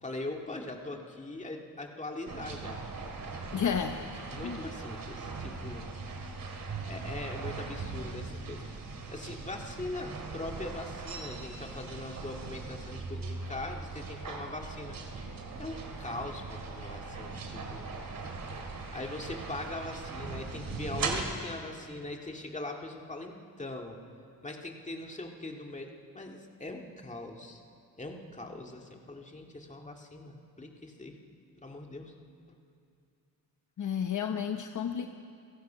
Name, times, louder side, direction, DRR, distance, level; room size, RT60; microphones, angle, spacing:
voice 1, 0.0-2.8 3.9-5.9 6.9-8.6 9.1-15.0 15.6-18.1 18.5-18.6 18.9-24.0 24.4-27.6 28.0-31.2 31.6-32.1, left 2 dB, 20° left, 2 dB, 2.1 m, -41 dB
sound 1, 2.3-21.2, right 4 dB, 70° right, 2.5 m, -40 dB
voice 2, 3.5-4.0 4.4-4.6 33.8-35.1, left 7 dB, 55° left, 6 dB, 0.9 m, -31 dB
29.5 x 16.5 x 5.7 m, 2.4 s
wide cardioid pair, 110°, 35 cm